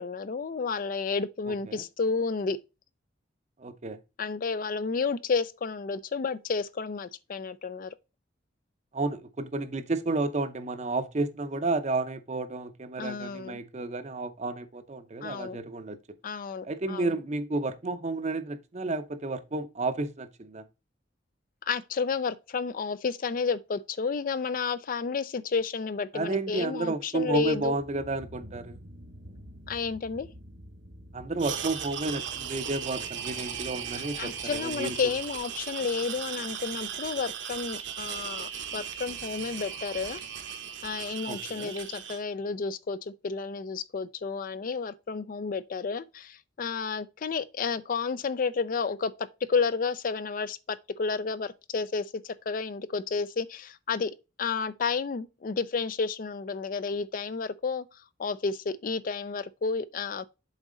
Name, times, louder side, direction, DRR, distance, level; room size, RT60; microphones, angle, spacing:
voice 1, 0.0-2.6 4.2-7.9 13.0-13.6 15.2-15.6 16.2-17.1 21.7-27.8 29.7-30.3 34.2-40.2 40.8-57.8 58.2-60.3, left 5 dB, 45° left, 0.4 m, -31 dB
voice 2, 3.6-4.0 8.9-16.0 16.6-20.6 26.1-28.8 31.1-35.0 41.3-41.7, right 2 dB, 35° right, 0.6 m, -31 dB
sound 1, 27.2-35.4, equal, 80° right, 1.8 m, -50 dB
sound 2, 31.4-42.2, right 8 dB, 65° right, 1.0 m, -37 dB
7.3 x 4.1 x 3.8 m
head